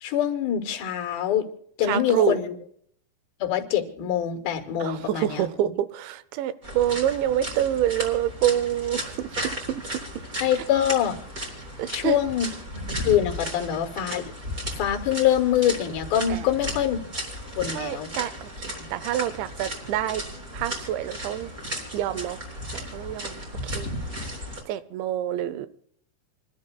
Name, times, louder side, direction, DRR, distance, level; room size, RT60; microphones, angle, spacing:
voice 1, 0.0-1.5 1.8-2.6 3.4-5.7 10.4-11.2 11.9-14.2 14.7-17.0 17.6-18.1 18.8-18.9, left 10 dB, 65° left, 3 dB, 2.9 m, -25 dB
voice 2, 1.8-2.4 4.8-9.4 9.7-9.8 10.6-10.7 11.8-12.2 16.3-16.5 17.7-20.2 20.5-21.5 21.9-22.4 22.7-23.9 24.7-25.7, right 12 dB, 85° right, 15 dB, 3.1 m, -27 dB
sound 1, 6.6-24.6, equal, 20° right, 3.3 m, -35 dB
28.5 x 12.0 x 2.3 m, 0.66 s
omnidirectional pair, 5.1 m